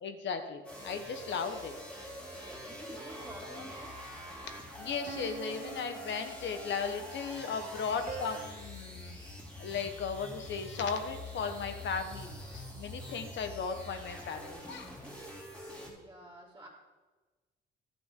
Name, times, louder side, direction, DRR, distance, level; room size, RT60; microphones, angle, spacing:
voice 1, 0.0-1.7 3.4-3.6 4.8-15.0, left 6 dB, 65° left, 7 dB, 1.3 m, -36 dB
sound 1, 0.6-15.9, left 1 dB, 5° left, 3.3 m, -45 dB
voice 2, 2.3-4.0 15.8-16.7, right 1 dB, 15° right, -8 dB, 2.9 m, -50 dB
sound 2, 2.9-3.9 5.1-7.0 8.1-8.5, right 8 dB, 45° right, 0.6 m, -46 dB
12.5 x 8.7 x 3.9 m, 1.2 s
cardioid pair, 90°, 20 cm